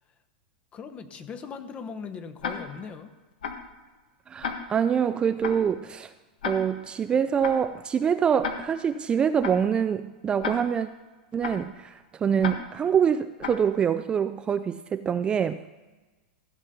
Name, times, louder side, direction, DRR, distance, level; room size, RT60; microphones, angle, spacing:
voice 1, 0.7-3.1, left 6 dB, 25° left, 9 dB, 0.9 m, -39 dB
Tick-tock, 2.4-2.9 3.4-3.8 4.4-4.9 5.4-5.8 6.4-6.9 7.4-7.8 8.4-8.9 9.4-9.8 10.4-10.9 11.4-11.8 12.4-12.9 13.4-13.8, left 6 dB, 75° left, 1.4 m, -34 dB
voice 2, 4.3-6.1 6.5-10.9 11.3-15.6, right 7 dB, 20° right, 11 dB, 0.3 m, -25 dB
14.5 x 5.3 x 6.8 m, 1.2 s
hypercardioid pair, 130°, 5 cm